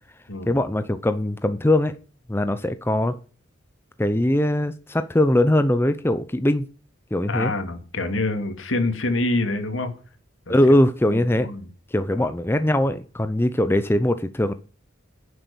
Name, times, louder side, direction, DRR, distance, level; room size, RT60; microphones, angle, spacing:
voice 1, 0.5-1.9 2.3-3.1 4.0-6.6 7.1-7.5 10.5-11.5 11.9-14.5, left 1 dB, 10° left, 0.6 m, -21 dB
voice 2, 7.3-9.9 10.5-10.6 11.0-11.7 12.2-12.3, left 2 dB, 75° left, 2.5 m, -26 dB
10.5 x 7.9 x 7.0 m
head